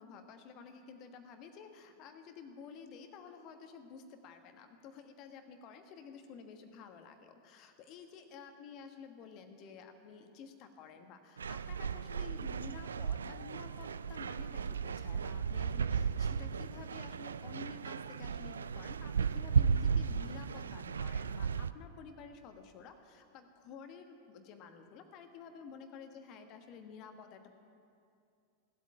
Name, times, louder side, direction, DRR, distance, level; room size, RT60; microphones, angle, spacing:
voice 1, 0.0-27.6, left 5 dB, 40° left, 6 dB, 1.4 m, -51 dB
sound 1, 11.4-21.7, right 6 dB, 70° right, 0.3 m, -35 dB
16.0 x 8.3 x 9.0 m, 2.5 s
figure-of-eight pair, 90°, 0 cm